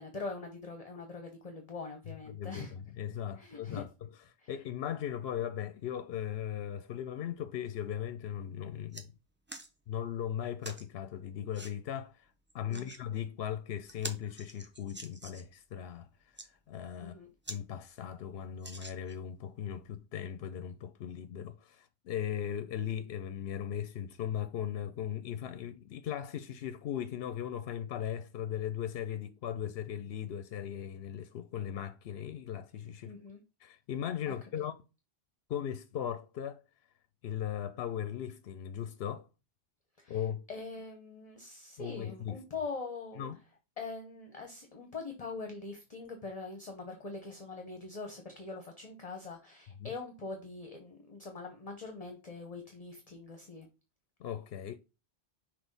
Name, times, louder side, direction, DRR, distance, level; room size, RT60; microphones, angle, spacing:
voice 1, 0.0-2.7 3.4-3.8 4.4-4.5 12.7-12.9 17.0-17.3 33.1-33.4 34.3-34.7 40.0-40.2 40.5-43.2 43.8-53.7, left 3 dB, 40° left, 1.0 m, -43 dB
voice 2, 2.3-4.1 4.5-9.1 9.9-17.2 17.5-33.1 33.6-34.8 35.5-36.6 37.2-39.3 40.1-40.4 41.8-42.4 43.2-43.4 49.8-49.9 54.2-54.8, left 9 dB, 70° left, 0.8 m, -38 dB
sound 1, 8.2-8.4 8.7-9.1 9.5-9.7 10.6-10.9 11.5-11.7 12.5-13.0 13.5-13.6 13.9-15.5 16.2-16.5 17.0-17.1 17.4-17.6 18.0-18.1 18.6-19.3 20.0-20.1, right 1 dB, 15° right, 0.6 m, -46 dB
6.1 x 2.9 x 5.3 m
omnidirectional pair, 1.1 m